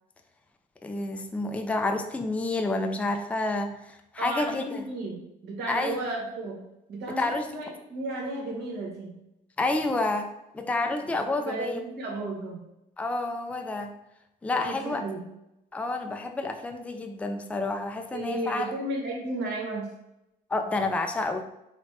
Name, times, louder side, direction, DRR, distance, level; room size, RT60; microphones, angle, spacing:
voice 1, 0.8-4.8 5.7-6.0 7.2-7.5 9.6-10.3 10.5-11.8 13.0-13.9 14.4-15.0 15.7-18.7 20.5-21.4, left 2 dB, 10° left, 6 dB, 0.4 m, -29 dB
voice 2, 4.2-6.6 6.9-9.1 11.1-12.6 14.5-15.2 18.1-19.9, right 2 dB, 75° right, -2 dB, 1.6 m, -34 dB
4.1 x 2.3 x 4.6 m, 0.87 s
cardioid pair, 110°, 17 cm